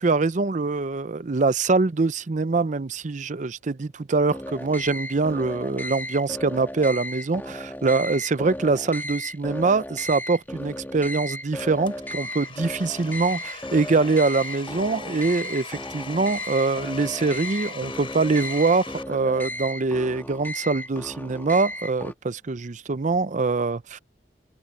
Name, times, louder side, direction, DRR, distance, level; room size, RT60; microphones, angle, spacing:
voice 1, 0.0-24.0, right 3 dB, 45° right, 0.6 m, -24 dB
sound 1, 4.3-22.1, left 1 dB, 10° left, 1.7 m, -35 dB
Domestic sounds home sounds, 11.6-19.0, left 5 dB, 30° left, 4.0 m, -40 dB
open air
head